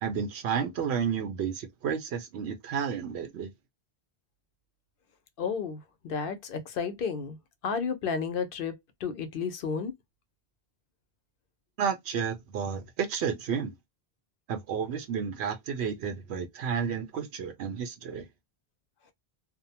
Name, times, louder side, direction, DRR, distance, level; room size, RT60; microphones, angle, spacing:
voice 1, 0.0-3.5 11.8-13.7 14.5-18.3, right 7 dB, 85° right, 0.8 m, -31 dB
voice 2, 5.4-7.4 7.6-8.7 9.0-9.9, left 6 dB, 65° left, 0.8 m, -32 dB
2.6 x 2.1 x 2.7 m
omnidirectional pair, 1.1 m